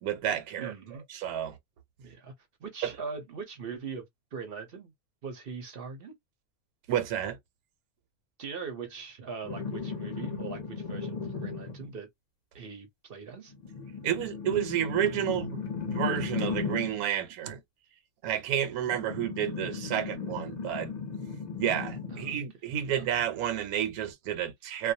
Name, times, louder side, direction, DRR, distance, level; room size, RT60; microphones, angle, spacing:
voice 1, 0.0-0.7 1.1-1.6 2.8-2.9 6.9-7.4 14.0-17.6 18.2-20.9 21.6-24.9, right 10 dB, 85° right, 1.1 m, -30 dB
voice 2, 0.6-1.0 2.0-2.3 2.6-4.9 5.2-6.1 8.4-12.1 12.5-13.5 22.1-22.4 22.8-23.1, right 5 dB, 55° right, 0.7 m, -41 dB
sound 1, 9.4-11.9 13.5-17.0 18.8-22.4 24.0-24.1, left 5 dB, 45° left, 0.6 m, -36 dB
2.4 x 2.1 x 2.7 m
omnidirectional pair, 1.5 m